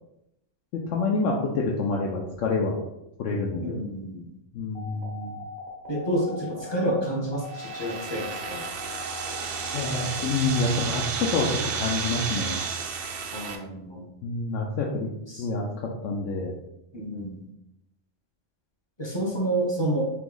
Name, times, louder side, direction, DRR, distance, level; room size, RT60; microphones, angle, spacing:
voice 1, 0.7-2.8 3.2-3.7 4.5-5.4 9.7-12.6 14.2-15.1 15.4-16.5, left 3 dB, 85° left, -2 dB, 0.9 m, -27 dB
voice 2, 3.6-4.3 5.9-8.6 13.3-14.1 15.3-15.5 16.9-17.5 19.0-20.1, right 1 dB, 25° left, -1 dB, 0.7 m, -29 dB
sound 1, 4.8-10.8, left 2 dB, 60° left, 1.2 m, -40 dB
sound 2, 7.4-13.6, right 6 dB, 60° right, 0.7 m, -32 dB
3.4 x 3.0 x 3.7 m, 0.85 s
omnidirectional pair, 1.2 m